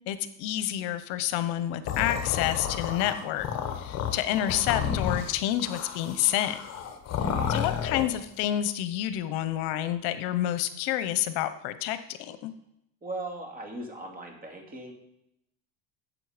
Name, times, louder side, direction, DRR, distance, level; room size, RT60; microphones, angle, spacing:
voice 1, 0.1-3.5 3.8-6.6 7.5-12.5, left 12 dB, 70° left, 12 dB, 1.0 m, -29 dB
sound 1, 1.9-8.2, left 8 dB, 40° left, 1.4 m, -31 dB
voice 2, 7.3-7.7 13.0-14.9, right 2 dB, 20° right, 2 dB, 2.6 m, -38 dB
14.0 x 7.9 x 5.0 m, 0.81 s
cardioid pair, 145°, 39 cm